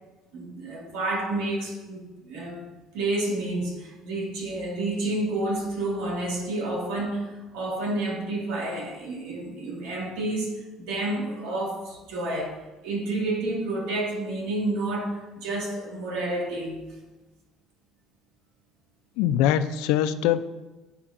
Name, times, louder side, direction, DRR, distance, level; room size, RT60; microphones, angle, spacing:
voice 1, 0.3-2.7 2.9-12.6 12.8-16.8, right 2 dB, 85° right, -1 dB, 1.5 m, -30 dB
voice 2, 19.2-20.4, left 11 dB, 85° left, 12 dB, 0.3 m, -22 dB
8.1 x 5.4 x 2.5 m, 1.1 s
cardioid pair, 180°, 0 cm